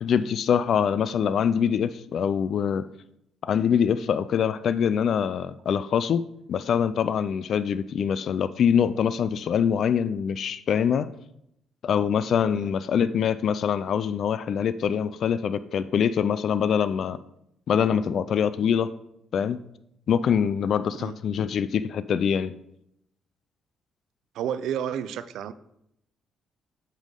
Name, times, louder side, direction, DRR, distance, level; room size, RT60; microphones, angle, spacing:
voice 1, 0.0-2.8 3.4-6.2 6.5-11.1 11.8-17.2 17.7-18.9 19.3-19.6 20.1-22.5, left 8 dB, 65° left, 15 dB, 0.3 m, -24 dB
voice 2, 24.3-25.5, right 9 dB, 80° right, 14 dB, 0.4 m, -31 dB
8.2 x 5.5 x 3.7 m, 0.77 s
cardioid pair, 90°, 0 cm